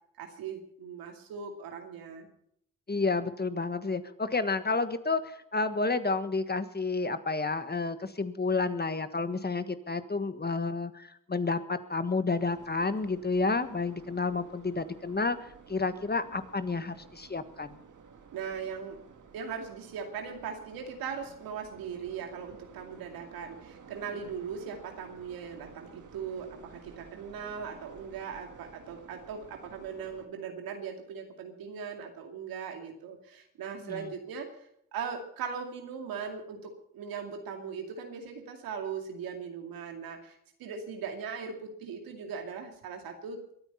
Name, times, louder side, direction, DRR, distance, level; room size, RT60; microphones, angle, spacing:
voice 1, 0.2-2.3 18.3-19.0 19.3-43.6, right 6 dB, 85° right, 4 dB, 2.5 m, -39 dB
voice 2, 2.9-17.8 33.8-34.1, left 3 dB, 30° left, 11 dB, 1.5 m, -30 dB
sound 1, 12.4-30.3, right 6 dB, 60° right, 2.1 m, -53 dB
22.5 x 9.2 x 5.7 m, 0.71 s
supercardioid pair, 50°, 34 cm